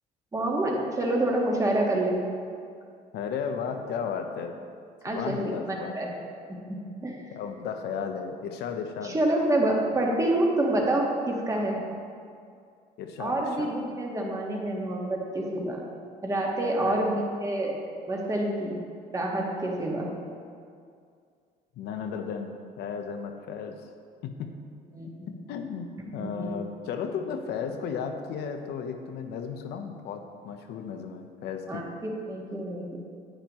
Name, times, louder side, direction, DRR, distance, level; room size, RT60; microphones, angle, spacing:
voice 1, 0.3-2.2 5.0-5.4 5.7-6.1 6.7-6.8 7.0-7.2 9.0-11.8 13.2-15.9 16.2-17.8 18.1-18.8 19.1-20.1 24.9-25.3 26.2-26.5 31.7-33.0, right 1 dB, 20° right, -1 dB, 1.6 m, -27 dB
voice 2, 3.1-4.6 5.1-5.9 7.3-9.2 11.5-11.7 13.0-13.7 16.8-17.2 21.7-23.9 24.2-24.5 25.3-25.9 26.1-31.9, left 6 dB, 75° left, 5 dB, 0.9 m, -34 dB
9.9 x 9.0 x 3.1 m, 2.3 s
cardioid pair, 110°, 17 cm